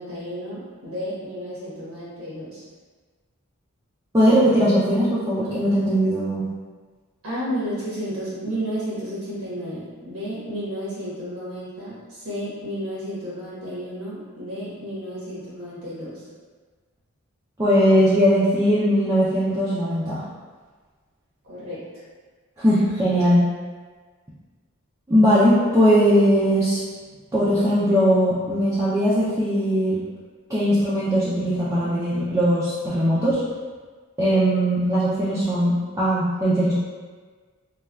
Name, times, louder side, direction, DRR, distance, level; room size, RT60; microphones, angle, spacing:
voice 1, 0.0-2.6 7.2-16.2 21.4-21.9, equal, 80° right, -9 dB, 1.2 m, -32 dB
voice 2, 4.1-6.4 17.6-20.2 22.6-23.4 25.1-26.8 27.3-30.0 30.5-33.4 34.2-36.7, equal, 15° right, -10 dB, 0.3 m, -19 dB
3.2 x 2.2 x 2.3 m, 1.4 s
head